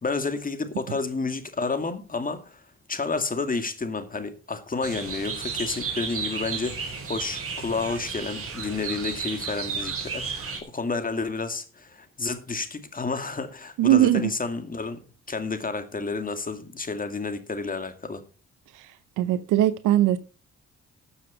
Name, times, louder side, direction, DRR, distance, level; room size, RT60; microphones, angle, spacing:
voice 1, 0.0-2.6 2.9-15.0 15.3-18.2, left 4 dB, 30° left, 2.3 m, -30 dB
sound 1, 4.8-10.6, right 5 dB, 45° right, 4.8 m, -33 dB
voice 2, 13.8-14.3 18.7-18.9 19.2-20.2, right 13 dB, 85° right, 0.8 m, -20 dB
13.0 x 7.2 x 5.7 m
cardioid pair, 90°, 30 cm